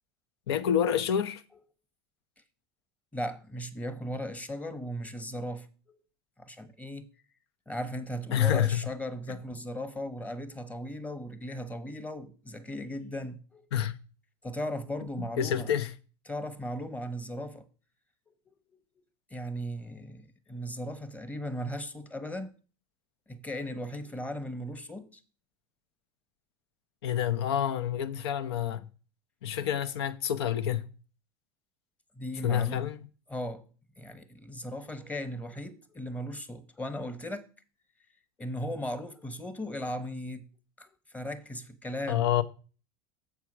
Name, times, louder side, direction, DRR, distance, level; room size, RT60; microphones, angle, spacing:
voice 1, 0.5-1.4 8.3-8.8 13.7-14.0 15.4-15.9 27.0-28.9 29.4-30.8 32.4-33.0 42.1-42.4, left 9 dB, 85° left, 0.8 m, -28 dB
voice 2, 3.1-6.0 6.4-7.1 7.7-13.7 14.4-15.7 16.3-17.7 18.3-18.4 19.3-22.5 23.3-25.2 32.1-32.8 33.3-33.6 34.0-37.5 38.4-40.5 40.8-42.3, equal, 10° left, 0.9 m, -37 dB
7.3 x 4.6 x 6.1 m
supercardioid pair, 110°, 13 cm